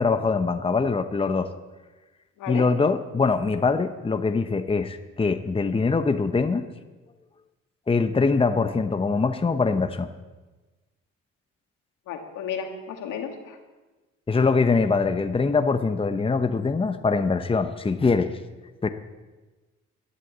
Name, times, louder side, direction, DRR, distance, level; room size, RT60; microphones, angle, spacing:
voice 1, 0.0-1.5 2.5-6.7 7.9-10.1 14.3-18.3 18.8-18.9, left 4 dB, 20° left, 9 dB, 0.9 m, -23 dB
voice 2, 12.1-13.6, left 7 dB, 90° left, 3 dB, 2.1 m, -33 dB
13.0 x 11.0 x 7.4 m, 1.2 s
cardioid pair, 90°, 30 cm